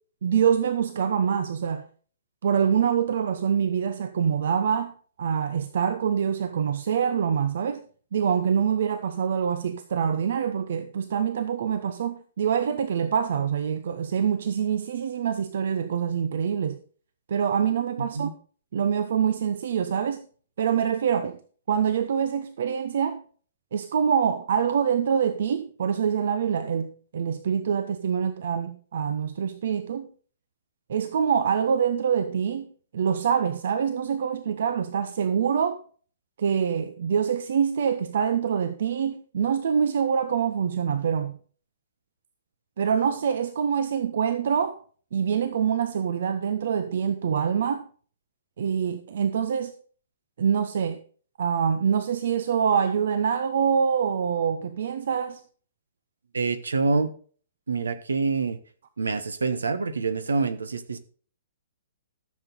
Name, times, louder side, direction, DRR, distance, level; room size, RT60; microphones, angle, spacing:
voice 1, 0.2-1.9 2.4-7.8 8.1-16.8 17.3-18.3 18.7-20.2 20.6-21.4 21.7-23.2 23.7-30.1 30.9-32.7 32.9-35.8 36.4-41.4 42.8-44.8 45.1-47.8 48.6-49.7 50.4-51.0 51.4-55.4, right 7 dB, 60° right, 0.8 m, -25 dB
voice 2, 56.3-57.1 57.7-58.6 59.0-61.0, right 4 dB, 75° right, 1.3 m, -26 dB
13.5 x 7.4 x 4.0 m
figure-of-eight pair, 115°, 0 cm